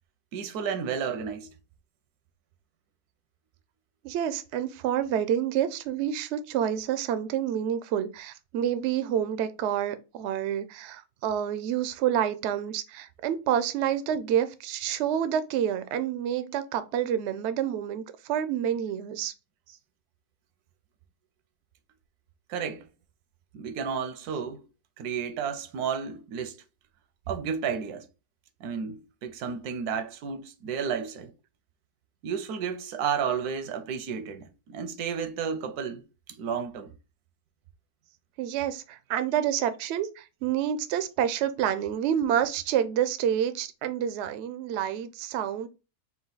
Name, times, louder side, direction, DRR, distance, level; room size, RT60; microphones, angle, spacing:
voice 1, 0.3-1.5 19.7-19.8 22.5-22.9 23.5-24.7 25.0-26.6 27.3-28.1 28.6-31.3 32.2-36.0 36.3-36.9 39.3-39.4, right 7 dB, 85° right, 1.2 m, -32 dB
voice 2, 4.0-19.3 38.4-45.7, right 9 dB, 65° right, 0.7 m, -28 dB
4.5 x 2.4 x 3.9 m
omnidirectional pair, 1.6 m